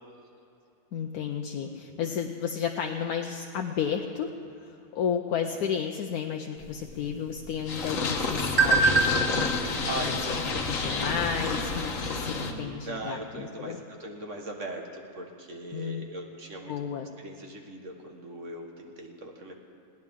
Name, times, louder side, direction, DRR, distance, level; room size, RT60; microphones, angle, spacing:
voice 1, 0.9-4.3 4.9-9.2 10.0-10.1 10.7-13.8 15.7-16.1 16.7-17.1, left 7 dB, 75° left, 3 dB, 1.2 m, -32 dB
voice 2, 1.6-2.1 9.9-10.4 12.5-16.8 17.2-19.5, right 2 dB, 50° right, 2 dB, 1.8 m, -39 dB
sound 1, 6.6-11.6, right 3 dB, 15° right, 2.6 m, -29 dB
Purr, 7.7-12.5, left 3 dB, 60° left, 1.5 m, -29 dB
21.0 x 17.0 x 3.7 m, 2.7 s
omnidirectional pair, 1.6 m